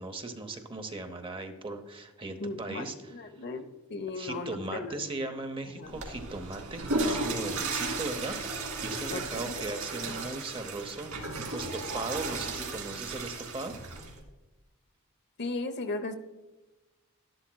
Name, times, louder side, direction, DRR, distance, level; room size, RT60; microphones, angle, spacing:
voice 1, 0.0-3.1 4.2-13.8, right 2 dB, 25° right, 7 dB, 0.8 m, -38 dB
voice 2, 2.4-3.6 3.9-5.0 5.7-5.9 9.1-9.5 15.4-16.1, left 3 dB, 50° left, 8 dB, 0.8 m, -36 dB
Water / Toilet flush, 5.8-14.2, right 3 dB, 80° right, 2.2 m, -35 dB
12.0 x 11.5 x 2.3 m, 1.1 s
head